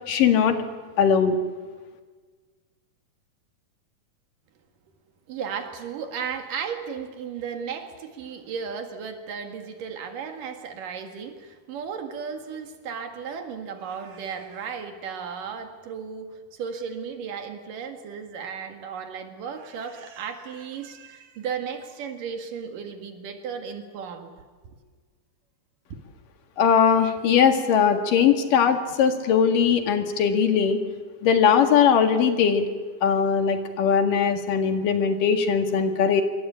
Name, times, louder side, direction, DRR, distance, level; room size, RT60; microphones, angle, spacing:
voice 1, 0.1-0.6 1.0-1.4 26.6-30.8 31.2-32.7 33.0-36.2, left 7 dB, 85° left, 6 dB, 3.6 m, -20 dB
voice 2, 5.3-24.3 24.6-24.8 25.9-26.0, right 6 dB, 85° right, 5 dB, 3.6 m, -35 dB
26.5 x 23.5 x 8.7 m, 1.4 s
omnidirectional pair, 3.7 m